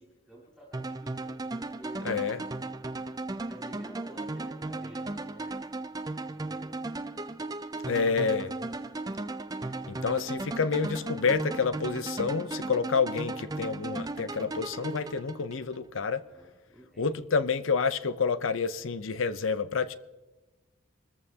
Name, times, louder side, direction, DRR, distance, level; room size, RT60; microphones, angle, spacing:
voice 1, 0.0-2.2 3.5-5.6 6.2-6.8 16.3-17.1, right 1 dB, ahead, 3.3 m, -50 dB
sound 1, 0.7-15.8, right 2 dB, 20° right, 0.4 m, -36 dB
voice 2, 2.0-2.4 7.8-8.5 9.9-16.2 17.0-20.0, left 5 dB, 80° left, 0.6 m, -28 dB
25.0 x 14.0 x 2.8 m
head